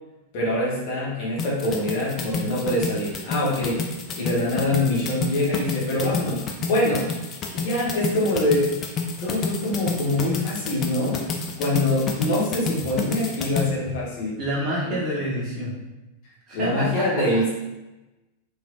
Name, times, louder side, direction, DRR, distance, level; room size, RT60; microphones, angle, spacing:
voice 1, 0.3-3.9 4.2-7.1 7.5-8.7 9.2-11.3 11.6-14.4 14.9-15.0 16.5-17.5, left 1 dB, 45° left, -5 dB, 1.0 m, -24 dB
sound 1, 1.4-13.7, left 4 dB, 30° left, 0.3 m, -29 dB
voice 2, 14.4-15.8 16.5-17.4, right 1 dB, 35° right, -5 dB, 0.9 m, -28 dB
3.2 x 2.5 x 2.4 m, 1.0 s
figure-of-eight pair, 90°, 0 cm